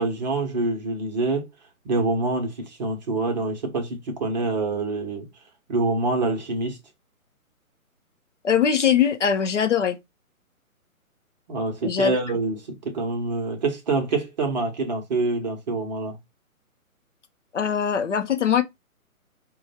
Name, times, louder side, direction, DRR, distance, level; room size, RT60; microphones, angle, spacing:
voice 1, 0.0-1.5 1.8-5.3 5.7-6.8 11.5-16.2, right 3 dB, 30° right, 1.0 m, -26 dB
voice 2, 8.4-10.0 11.8-12.2 17.5-18.6, left 7 dB, 55° left, 0.7 m, -21 dB
4.5 x 2.3 x 4.1 m
hypercardioid pair, 150°, 43 cm